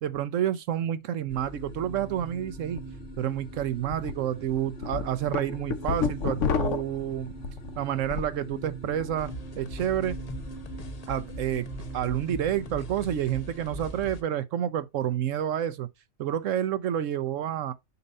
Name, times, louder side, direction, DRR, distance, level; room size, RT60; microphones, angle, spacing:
voice 1, 0.0-2.8 3.2-7.3 7.8-10.2 11.1-11.7 11.9-15.9 16.2-17.7, right 10 dB, 75° right, 1.0 m, -29 dB
sound 1, 1.3-14.2, right 3 dB, 55° left, 1.7 m, -43 dB
sound 2, 2.7-2.8 3.2-3.3 3.9-4.1 4.6-8.4 8.7-9.2, left 6 dB, 70° left, 1.2 m, -30 dB
sound 3, 9.2-14.2, left 1 dB, 35° left, 0.7 m, -40 dB
6.7 x 2.7 x 5.4 m
omnidirectional pair, 1.3 m